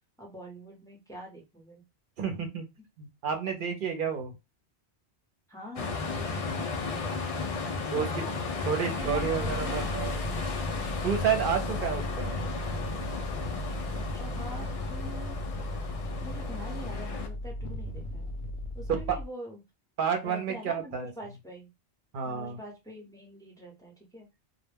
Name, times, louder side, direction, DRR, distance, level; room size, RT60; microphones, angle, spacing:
voice 1, 0.2-1.8 5.5-7.3 7.8-8.3 8.8-10.4 11.8-12.0 13.9-15.4 16.2-18.3 18.7-19.6 20.2-21.7 22.2-24.3, equal, 5° left, -1 dB, 0.6 m, -44 dB
voice 2, 2.2-2.7 3.0-4.3 7.9-8.1 8.7-10.3 11.0-12.4 18.9-19.0 20.0-21.1 22.1-22.6, right 7 dB, 55° right, 5 dB, 0.8 m, -30 dB
sound 1, 5.8-17.3, left 4 dB, 60° left, 0.3 m, -34 dB
sound 2, 9.0-19.3, left 1 dB, 75° left, 0.8 m, -37 dB
2.2 x 2.1 x 3.3 m, 0.23 s
omnidirectional pair, 1.1 m